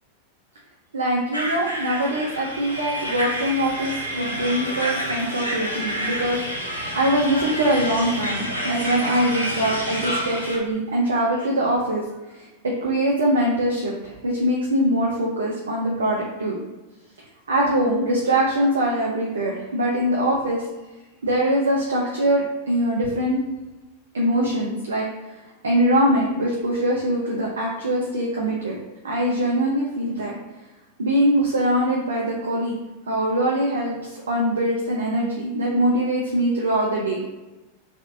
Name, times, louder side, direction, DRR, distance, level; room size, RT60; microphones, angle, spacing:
voice 1, 0.9-12.0 12.3-12.5 12.8-16.6 17.5-20.7 21.2-23.4 24.1-25.1 25.6-28.8 29.0-30.3 31.0-32.7 33.1-37.2, right 1 dB, 70° right, -2 dB, 0.4 m, -23 dB
sound 1, 1.3-10.6, right 1 dB, 90° left, 0.7 m, -29 dB
3.4 x 2.4 x 2.6 m, 1.1 s
figure-of-eight pair, 90°, 0 cm